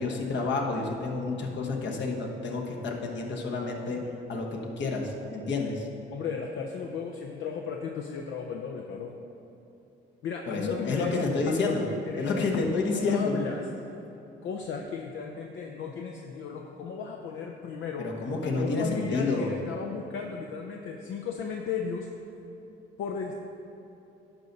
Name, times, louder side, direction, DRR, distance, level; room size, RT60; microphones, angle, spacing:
voice 1, 0.0-4.0 4.3-5.9 10.5-11.8 12.2-13.4 18.0-19.5, left 3 dB, 65° left, 0 dB, 1.2 m, -29 dB
voice 2, 6.1-9.2 10.2-13.6 14.4-22.1 23.0-23.3, left 6 dB, 80° left, 2 dB, 0.6 m, -35 dB
10.5 x 5.4 x 4.0 m, 2.9 s
cardioid pair, 90°, 20 cm